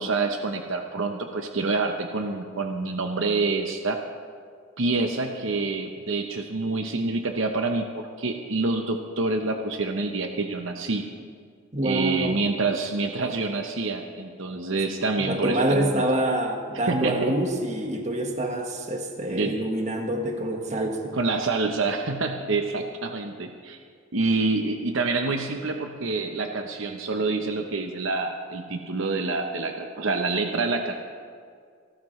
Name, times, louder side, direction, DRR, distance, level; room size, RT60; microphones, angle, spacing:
voice 1, 0.0-4.0 4.8-11.0 11.8-16.0 16.9-17.4 19.3-19.5 21.1-23.8 24.1-30.9, right 3 dB, 65° right, 4 dB, 0.8 m, -27 dB
voice 2, 11.7-12.4 15.2-21.1, right 1 dB, 35° right, 2 dB, 1.5 m, -26 dB
28.0 x 12.5 x 3.2 m, 2.1 s
head